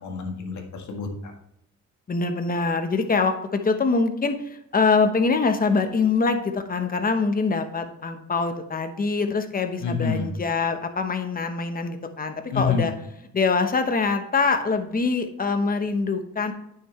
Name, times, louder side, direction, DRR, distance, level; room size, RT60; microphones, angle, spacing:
voice 1, 0.0-1.3 9.8-10.3 12.5-12.9, left 5 dB, 70° left, 2 dB, 1.7 m, -27 dB
voice 2, 2.1-12.9 13.3-16.5, left 4 dB, 30° left, 7 dB, 1.1 m, -24 dB
9.3 x 6.0 x 3.2 m, 0.79 s
cardioid pair, 90°, 30 cm